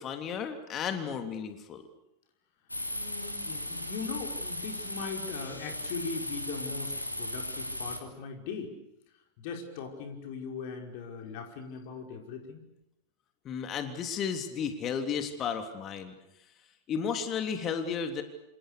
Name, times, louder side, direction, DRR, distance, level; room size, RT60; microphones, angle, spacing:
voice 1, 0.0-1.8 13.4-16.1 16.9-18.2, left 7 dB, 30° left, 7 dB, 3.3 m, -33 dB
sound 1, 2.7-8.0, left 1 dB, 85° left, 3.0 m, -37 dB
voice 2, 2.9-6.9 7.2-8.7 9.4-12.6, left 5 dB, 50° left, 4 dB, 5.4 m, -39 dB
28.5 x 28.5 x 6.9 m, 0.86 s
figure-of-eight pair, 90°, 0 cm